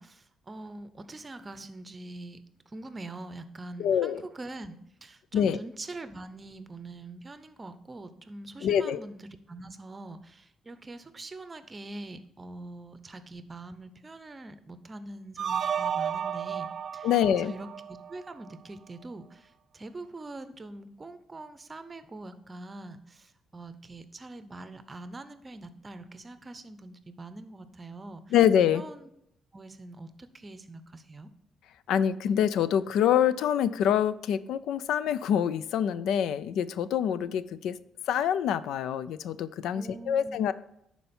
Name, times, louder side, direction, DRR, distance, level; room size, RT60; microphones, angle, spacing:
voice 1, 0.0-17.1 17.4-28.2 28.7-29.1 29.5-31.3 39.7-40.5, right 2 dB, 25° right, 11 dB, 0.8 m, -44 dB
voice 2, 3.8-4.2 5.3-5.6 8.6-9.0 17.0-17.5 28.3-28.8 31.9-37.8 38.1-40.5, left 9 dB, 85° left, 16 dB, 0.4 m, -25 dB
sound 1, 15.4-18.5, right 8 dB, 55° right, 0.4 m, -32 dB
11.0 x 4.4 x 4.3 m, 0.78 s
cardioid pair, 90°, 0 cm